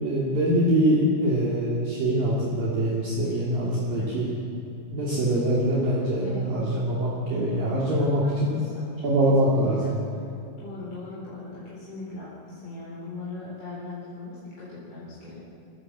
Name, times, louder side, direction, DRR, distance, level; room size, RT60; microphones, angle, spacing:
voice 1, 0.0-4.3 4.9-8.6 9.0-9.9, right 1 dB, 50° right, -5 dB, 4.1 m, -24 dB
voice 2, 6.2-6.7 7.9-8.9 9.2-9.3 9.7-9.9 10.6-15.5, left 3 dB, 35° left, -7 dB, 4.4 m, -40 dB
26.5 x 15.5 x 7.6 m, 2.9 s
omnidirectional pair, 5.5 m